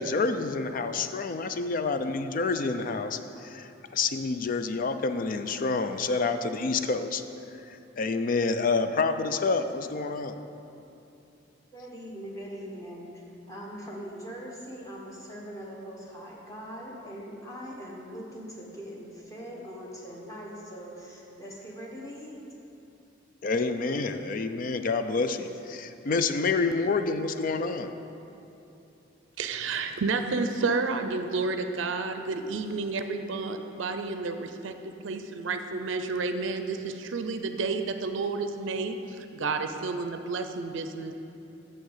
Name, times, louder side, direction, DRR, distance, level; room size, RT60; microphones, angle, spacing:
voice 1, 0.0-7.2 7.7-10.4 23.4-27.9, left 4 dB, 45° left, 9 dB, 0.4 m, -28 dB
voice 2, 11.7-22.4, equal, 20° left, -3 dB, 1.3 m, -41 dB
voice 3, 29.4-34.7 35.0-41.1, right 4 dB, 80° right, 7 dB, 0.5 m, -30 dB
6.6 x 6.4 x 7.2 m, 2.8 s
head